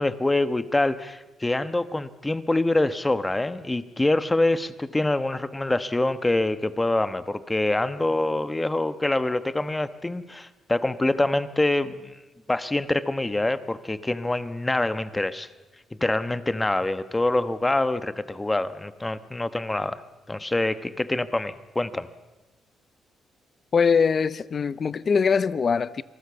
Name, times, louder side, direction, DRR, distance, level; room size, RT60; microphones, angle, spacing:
voice 1, 0.0-12.2 12.5-15.5 16.0-20.0 20.3-22.1, left 2 dB, 15° left, 1.2 m, -25 dB
voice 2, 23.7-26.0, left 5 dB, 45° left, 0.8 m, -22 dB
26.5 x 19.0 x 7.0 m
cardioid pair, 90°, 0 cm